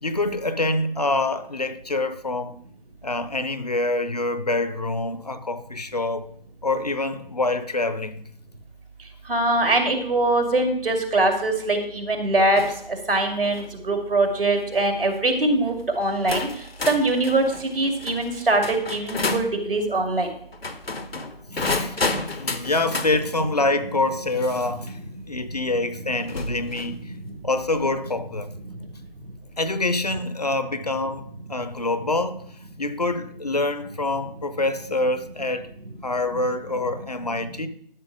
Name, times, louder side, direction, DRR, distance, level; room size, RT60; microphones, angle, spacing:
voice 1, 0.0-2.5 3.0-6.3 6.6-8.2 21.1-22.0 22.4-27.1 27.4-28.5 29.6-32.5 32.8-35.7 36.0-37.7, left 2 dB, 45° left, 0.7 m, -26 dB
voice 2, 9.3-12.6 13.1-16.5 16.9-20.3, right 2 dB, 70° right, 2.5 m, -22 dB
sound 1, 12.6-12.9 13.4-13.7 14.5-14.8 15.7-15.8 16.3-19.5 20.5-23.1 24.9-25.0 26.3-27.0, left 3 dB, 90° left, 1.2 m, -30 dB
12.0 x 5.7 x 5.0 m
figure-of-eight pair, 170°, 29 cm